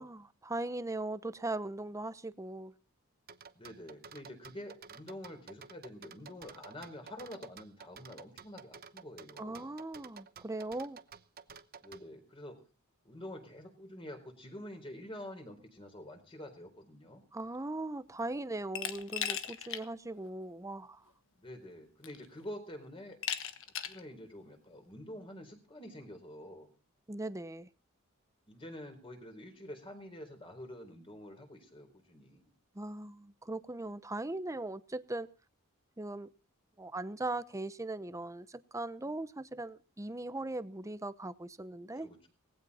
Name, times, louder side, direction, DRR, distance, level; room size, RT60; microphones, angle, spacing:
voice 1, 0.0-2.7 9.4-11.0 17.3-21.0 27.1-27.7 32.7-35.3 36.0-36.3 36.8-42.1, right 2 dB, 15° right, 0.7 m, -39 dB
sound 1, 3.3-12.0, right 6 dB, 45° right, 0.9 m, -51 dB
voice 2, 3.5-9.7 11.8-12.6 13.0-17.2 21.4-23.2 23.8-26.7 28.5-32.5 42.0-42.3, left 1 dB, 25° left, 4.2 m, -47 dB
Glass, 18.7-19.8 20.2-20.3 21.5-21.6 22.0-22.4 23.2-24.0, left 9 dB, 65° left, 1.3 m, -37 dB
19.0 x 15.5 x 4.2 m
head